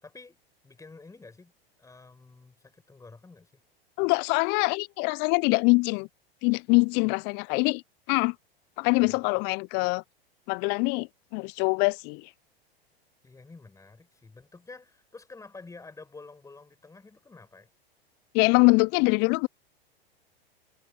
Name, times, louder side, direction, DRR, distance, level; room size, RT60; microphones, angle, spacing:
voice 1, 0.0-0.4 0.6-1.5 1.8-3.6 9.0-9.2 13.2-17.7, left 3 dB, 10° left, 5.3 m, -49 dB
voice 2, 4.0-6.1 6.4-7.8 8.1-8.4 8.8-10.0 10.5-11.1 11.3-12.3 18.3-19.5, left 31 dB, 35° left, 0.5 m, -23 dB
hypercardioid pair, 100°, 30 cm